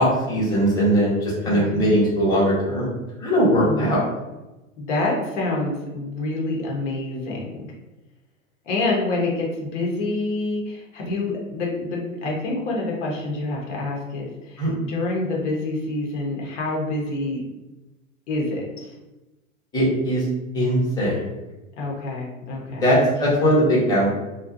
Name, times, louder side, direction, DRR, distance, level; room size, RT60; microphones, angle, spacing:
voice 1, 0.0-2.9 3.2-4.0 14.6-14.7 19.7-20.2 20.5-21.3 22.8-24.1, equal, 10° left, -7 dB, 1.0 m, -20 dB
voice 2, 1.4-1.9 3.6-4.0 4.8-7.7 8.6-17.4 18.3-19.0 21.8-22.8, left 2 dB, 60° left, -2 dB, 0.9 m, -27 dB
2.5 x 2.3 x 2.6 m, 1.0 s
hypercardioid pair, 110°, 42 cm